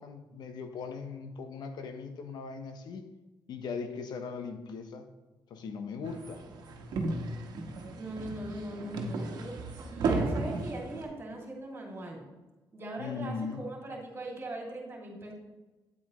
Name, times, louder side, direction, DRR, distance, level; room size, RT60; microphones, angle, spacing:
voice 1, 0.0-3.0 3.5-5.1 5.5-6.4 13.0-13.6, left 5 dB, 75° left, 7 dB, 1.0 m, -39 dB
sound 1, 6.0-11.0, right 3 dB, 70° right, 1.2 m, -34 dB
voice 2, 8.0-9.6 9.9-12.2 12.7-15.3, right 1 dB, 30° right, -1 dB, 2.5 m, -40 dB
8.7 x 8.5 x 3.1 m, 1.1 s
cardioid pair, 120°, 7 cm